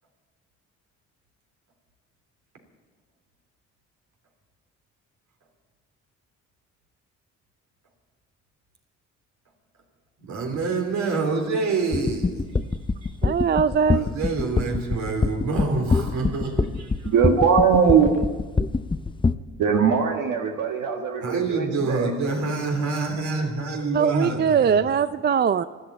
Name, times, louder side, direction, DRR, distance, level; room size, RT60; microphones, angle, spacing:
voice 1, 10.3-13.1 13.9-17.1 21.2-24.9, right 3 dB, 65° right, 3 dB, 3.5 m, -27 dB
sound 1, 11.9-19.3, left 4 dB, 15° left, 0.6 m, -23 dB
voice 2, 13.2-14.1 23.9-25.6, right 7 dB, 35° right, 13 dB, 0.4 m, -21 dB
voice 3, 17.0-18.3 19.6-22.1, right 6 dB, 85° right, 2 dB, 1.6 m, -20 dB
13.0 x 12.0 x 8.8 m, 1.3 s
cardioid pair, 90°, 30 cm